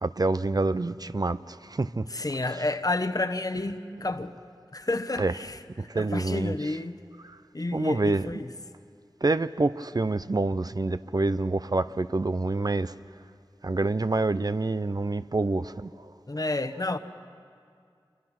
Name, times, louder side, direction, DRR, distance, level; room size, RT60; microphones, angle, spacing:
voice 1, 0.0-2.0 2.5-2.7 3.9-4.0 5.2-5.3 5.8-6.8 7.2-7.4 7.7-8.3 9.2-12.9 13.6-15.9, right 2 dB, 45° right, 0.5 m, -27 dB
voice 2, 2.1-4.3 4.7-5.6 5.9-7.0 7.5-8.5 16.3-17.0, left 2 dB, 45° left, 1.0 m, -30 dB
26.5 x 25.0 x 6.0 m
wide cardioid pair, 50°, 9 cm